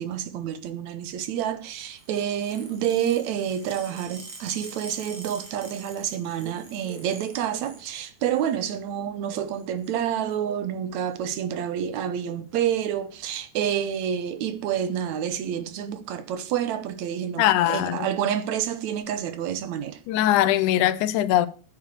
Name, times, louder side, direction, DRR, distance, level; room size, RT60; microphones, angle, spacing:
voice 1, 0.0-20.0, right 9 dB, 75° right, 2.2 m, -28 dB
sound 1, 2.0-7.9 8.2-8.8 9.5-10.0 11.1-11.3 12.3-12.6 12.8-13.0 13.2-13.3 13.6-14.1 14.7-14.8 15.8-15.9, right 3 dB, 50° right, 3.9 m, -45 dB
voice 2, 17.4-18.1 20.1-21.5, left 13 dB, 85° left, 2.2 m, -21 dB
10.0 x 8.3 x 6.7 m
omnidirectional pair, 3.5 m